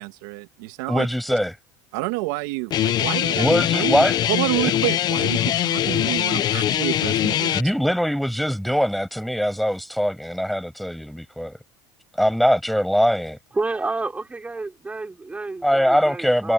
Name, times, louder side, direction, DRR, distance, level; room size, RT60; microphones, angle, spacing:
voice 1, 0.0-1.1 1.9-7.6, right 22 dB, 80° right, 2.3 m, -29 dB
voice 2, 0.9-1.6 3.4-4.2 4.6-4.7 7.5-11.6 12.2-13.4 15.6-16.5, equal, ahead, 7.3 m, -22 dB
Guitar, 2.7-7.6, left 11 dB, 45° left, 1.1 m, -22 dB
voice 3, 13.5-16.5, right 3 dB, 15° right, 4.7 m, -30 dB
supercardioid pair, 105°, 10 cm